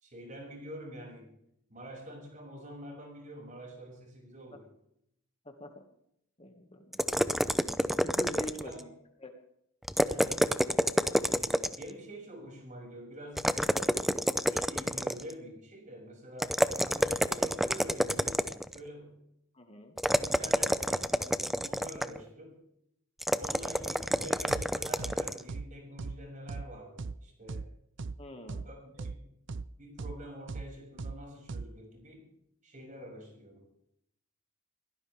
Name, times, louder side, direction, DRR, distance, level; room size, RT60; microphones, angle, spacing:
voice 1, 0.0-1.3 1.7-4.6 8.6-8.9 10.1-10.5 11.3-13.5 14.4-18.4 18.7-19.2 20.1-22.6 23.4-27.7 28.6-29.3 29.8-32.3 32.6-33.6, equal, 35° right, 1 dB, 6.6 m, -46 dB
voice 2, 6.4-7.3 7.8-8.9 9.2-9.3 19.5-19.9 28.2-28.6, equal, 30° left, 4 dB, 1.8 m, -44 dB
sound 1, 6.9-8.8 9.8-11.9 13.4-15.3 16.4-18.8 20.0-22.2 23.2-25.4, equal, ahead, 0.5 m, -28 dB
sound 2, 24.5-24.7 25.0-25.2 25.5-25.7 26.0-26.2 26.5-26.7 27.0-27.1 27.5-27.7 28.0-28.2 28.5-28.7 29.0-29.2 29.5-29.7 30.0-30.2 30.5-30.7 31.0-31.1 31.5-31.7, right 4 dB, 60° right, 0.6 m, -37 dB
22.5 x 17.0 x 3.5 m, 0.74 s
head